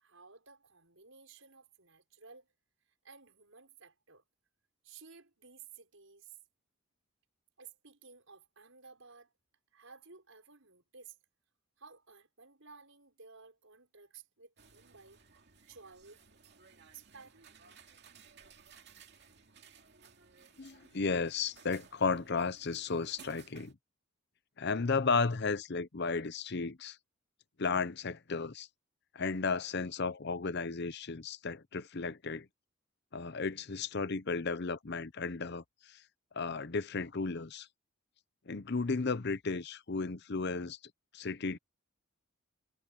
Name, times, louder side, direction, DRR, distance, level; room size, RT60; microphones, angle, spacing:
voice 1, 0.0-2.5 3.0-4.2 4.8-6.4 7.6-9.3 9.7-11.2 11.8-15.2 15.7-16.2 16.9-17.5, right 5 dB, 70° right, 6.1 m, -55 dB
sound 1, 14.6-23.7, right 6 dB, 55° right, 2.5 m, -59 dB
voice 2, 20.6-23.7 24.6-27.0 27.6-28.7 29.1-32.5 33.1-36.0 36.3-37.7 38.5-40.8 41.1-41.6, left 4 dB, 55° left, 0.8 m, -34 dB
head